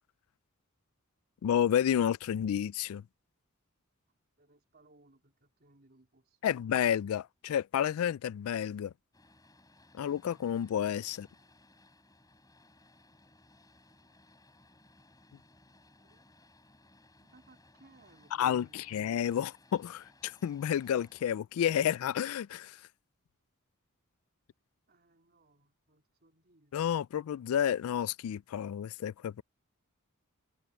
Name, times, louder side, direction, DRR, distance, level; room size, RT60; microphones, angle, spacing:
voice 1, 1.4-3.0 6.4-8.9 9.9-11.3 18.4-22.8 26.7-29.4, left 9 dB, 70° left, 0.3 m, -30 dB
voice 2, 4.4-6.5 11.1-11.5 12.0-12.1 14.0-14.2 15.7-16.3 17.2-19.1 24.9-26.8, right 2 dB, 45° right, 3.6 m, -65 dB
Boat Water vehicle, 9.1-21.3, left 2 dB, 15° left, 7.0 m, -62 dB
head